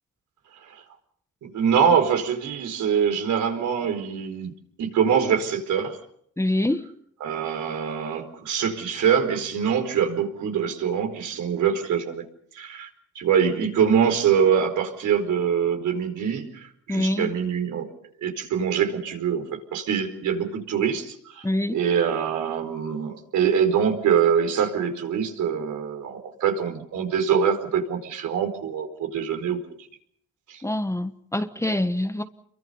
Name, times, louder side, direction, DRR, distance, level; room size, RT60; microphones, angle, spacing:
voice 1, 1.4-4.5 4.8-6.0 7.2-12.2 12.5-12.9 13.1-17.9 18.2-29.6 30.5-30.6, right 7 dB, 75° right, 4.7 m, -24 dB
voice 2, 6.4-6.9 16.9-17.3 21.4-21.8 30.6-32.2, left 1 dB, 10° left, 1.3 m, -25 dB
28.5 x 23.5 x 5.6 m
cardioid pair, 90°, 30 cm